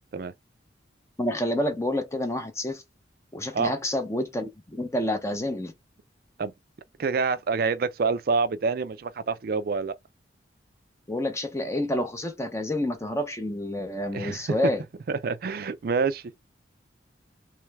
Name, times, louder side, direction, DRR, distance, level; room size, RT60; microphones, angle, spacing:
voice 1, 1.2-2.8 3.3-5.7 11.1-14.8, left 1 dB, 15° left, 0.6 m, -28 dB
voice 2, 7.0-10.0 14.1-14.6 15.1-16.3, right 4 dB, 55° right, 0.4 m, -27 dB
3.2 x 3.2 x 3.4 m
head